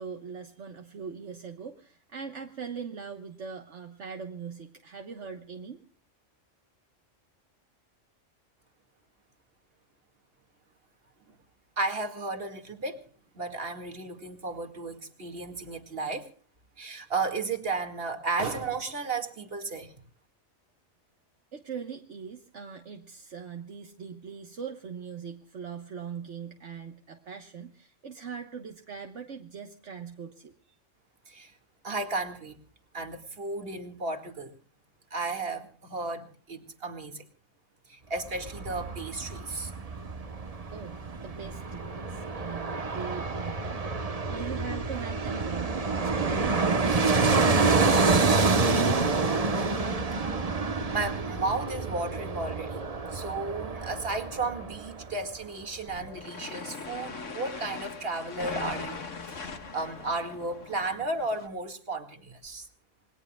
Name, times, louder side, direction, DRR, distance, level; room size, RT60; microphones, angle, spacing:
voice 1, 0.0-5.8 21.5-30.5 40.7-46.7 47.1-49.4, right 6 dB, 70° right, 4 dB, 1.5 m, -41 dB
voice 2, 11.8-13.0 13.3-16.3 16.8-19.9 31.3-31.5 31.8-32.5 32.9-34.5 35.1-37.3 37.9-39.7 50.9-52.8 53.1-62.7, right 3 dB, 50° right, 6 dB, 2.3 m, -34 dB
Fixed-wing aircraft airplane, 38.2-55.1 55.4-55.5, right 4 dB, 30° right, 1.1 m, -28 dB
sound 1, 55.9-61.5, left 4 dB, 75° left, 2.0 m, -40 dB
27.5 x 21.0 x 2.3 m, 0.42 s
omnidirectional pair, 1.3 m